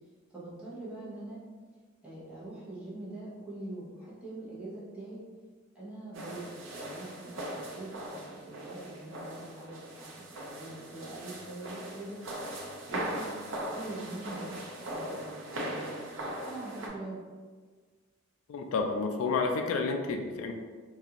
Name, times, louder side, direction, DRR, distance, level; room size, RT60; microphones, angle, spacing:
voice 1, 0.3-1.4 2.0-5.2 5.7-13.3 13.7-16.0 16.4-17.1, right 2 dB, 5° right, -9 dB, 0.7 m, -43 dB
sound 1, 6.1-16.9, right 1 dB, 60° right, 0.5 m, -40 dB
voice 2, 18.5-20.5, left 4 dB, 75° left, 3 dB, 0.3 m, -30 dB
2.5 x 2.3 x 2.8 m, 1.5 s
head